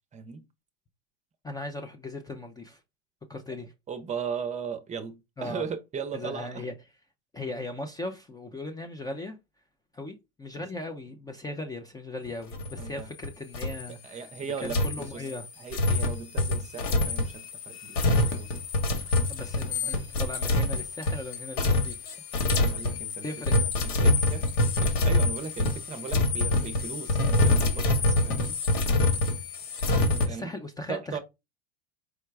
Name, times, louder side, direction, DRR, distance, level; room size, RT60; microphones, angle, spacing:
voice 1, 0.1-0.4 3.9-6.7 10.5-10.6 12.8-13.1 13.9-15.2 15.6-18.6 22.5-23.2 23.5-24.5 24.8-28.5 30.3-30.5 30.9-31.2, right 6 dB, 25° right, 0.7 m, -37 dB
voice 2, 1.4-2.8 3.3-3.7 5.4-5.7 6.1-6.7 7.3-9.4 9.9-14.3 14.6-15.5 19.3-22.1 23.2-23.5 30.2-31.2, left 2 dB, 10° left, 0.5 m, -38 dB
sound 1, 12.5-13.3 13.5-13.9 14.6-30.3, left 2 dB, 70° left, 1.4 m, -26 dB
4.8 x 2.2 x 4.6 m
hypercardioid pair, 110°, 31 cm